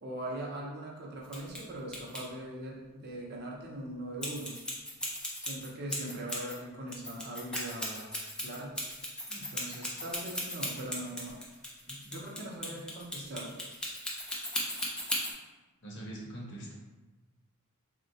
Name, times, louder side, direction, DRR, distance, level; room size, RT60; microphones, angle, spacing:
voice 1, 0.0-4.5 5.4-8.1 8.4-8.8 9.3-11.4 11.9-13.5, right 1 dB, 45° right, -2 dB, 0.6 m, -41 dB
sound 1, 1.2-1.6 1.9-2.2 4.2-6.5 6.9-15.3, left 1 dB, 5° left, 0.4 m, -36 dB
voice 2, 15.8-16.7, right 1 dB, 55° left, -3 dB, 0.8 m, -43 dB
3.5 x 2.1 x 2.7 m, 1.1 s
head